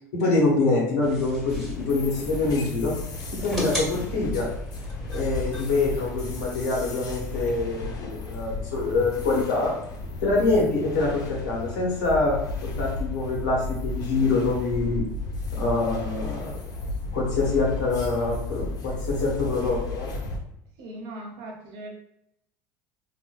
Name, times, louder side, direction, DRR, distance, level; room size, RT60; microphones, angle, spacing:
voice 1, 0.1-2.9 3.3-4.5 5.1-9.8 10.2-12.4 12.6-15.1 15.5-16.6 17.1-20.1, left 3 dB, 75° left, -3 dB, 1.1 m, -25 dB
sound 1, 1.0-8.0, equal, ahead, 1.4 m, -38 dB
sound 2, 1.5-20.4, left 3 dB, 45° left, 0.7 m, -34 dB
voice 2, 20.8-21.9, right 1 dB, 60° right, 1 dB, 0.8 m, -39 dB
3.7 x 2.5 x 2.3 m, 0.77 s
hypercardioid pair, 75°, 9 cm